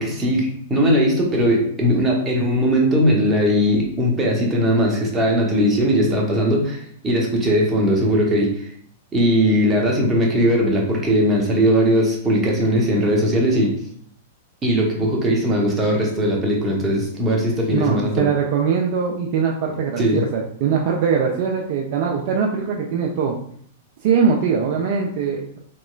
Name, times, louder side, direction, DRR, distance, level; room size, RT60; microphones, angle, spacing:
voice 1, 0.0-8.7 9.1-13.7 14.6-18.3 20.0-20.2, equal, 15° right, -1 dB, 0.8 m, -19 dB
voice 2, 17.7-23.3 24.0-25.6, right 6 dB, 45° right, 0 dB, 0.3 m, -21 dB
3.0 x 2.8 x 2.3 m, 0.63 s
figure-of-eight pair, 100°, 0 cm